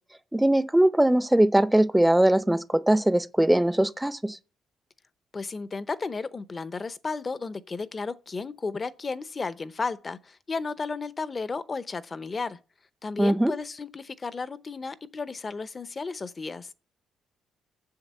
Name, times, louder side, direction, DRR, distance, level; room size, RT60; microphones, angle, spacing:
voice 1, 0.3-4.4 13.2-13.5, right 1 dB, 5° right, 0.6 m, -21 dB
voice 2, 5.3-12.6 13.0-16.7, left 4 dB, 35° left, 0.7 m, -33 dB
7.2 x 6.6 x 7.3 m
cardioid pair, 90°, 0 cm